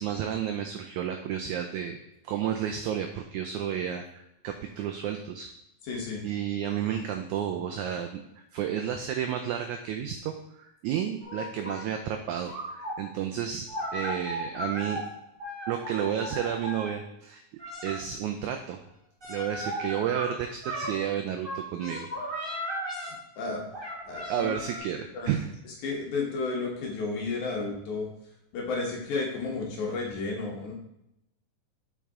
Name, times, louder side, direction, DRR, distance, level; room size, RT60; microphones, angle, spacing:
voice 1, 0.0-2.0 2.2-5.5 6.2-8.2 8.5-13.7 13.9-15.1 15.7-17.4 17.8-18.8 19.3-22.6 24.3-25.5, right 9 dB, 85° right, 5 dB, 1.7 m, -31 dB
voice 2, 5.8-6.2 23.4-23.6 24.0-24.5 25.1-25.3 25.6-28.1 28.5-30.7, left 3 dB, 65° left, -1 dB, 2.4 m, -32 dB
sound 1, 11.2-11.8 12.5-12.9 13.7-15.0 15.4-16.9 17.6-17.9 19.2-20.2 20.6-20.9 21.4-23.1 23.7-24.8, equal, 25° right, 1.3 m, -35 dB
7.2 x 4.7 x 3.6 m, 0.83 s
omnidirectional pair, 3.9 m